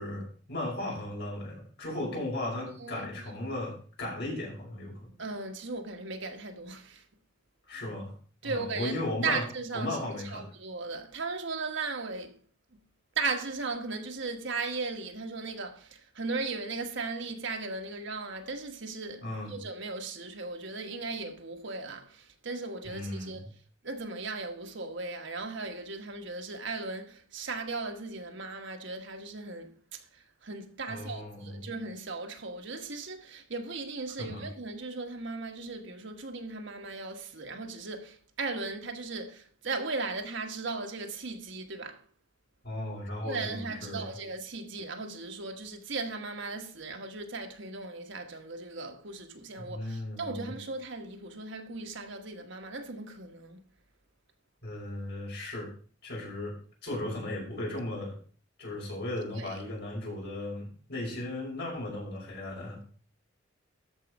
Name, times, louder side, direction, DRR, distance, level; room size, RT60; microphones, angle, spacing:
voice 1, 0.0-3.7 4.0-5.1 7.7-8.1 8.4-9.5 9.7-10.4 19.2-19.5 22.9-23.4 30.9-31.6 34.2-34.4 42.6-44.1 49.6-50.4 54.6-55.7 56.0-56.5 56.8-58.2 58.6-63.0, left 1 dB, 60° left, 5.9 m, -36 dB
voice 2, 2.8-3.3 5.2-7.1 8.4-9.0 9.2-12.4 12.7-12.8 13.1-42.0 43.2-53.6 59.4-59.6, right 3 dB, 70° right, 1.4 m, -37 dB
13.0 x 4.8 x 5.3 m
head